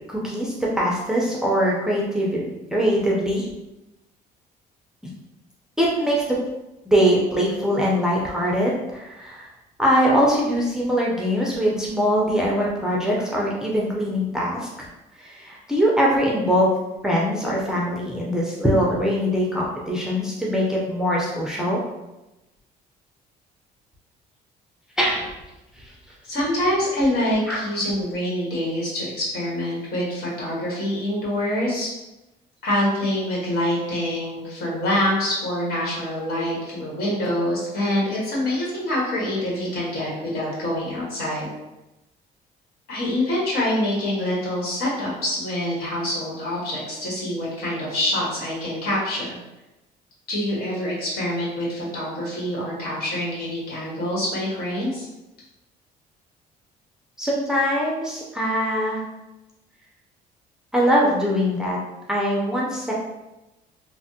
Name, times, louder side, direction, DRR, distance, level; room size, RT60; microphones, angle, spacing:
voice 1, 0.1-3.5 5.8-6.4 6.9-9.5 9.8-14.9 15.1-16.7 17.0-21.8 25.0-25.3 25.8-25.9 27.5-27.6 57.2-59.0 60.7-61.8 62.1-62.9, equal, 5° right, -4 dB, 0.5 m, -22 dB
voice 2, 26.2-31.9 32.6-41.4 42.9-49.4 50.3-55.1, left 1 dB, 65° left, -5 dB, 1.4 m, -25 dB
3.3 x 2.1 x 2.7 m, 0.99 s
cardioid pair, 110°, 17 cm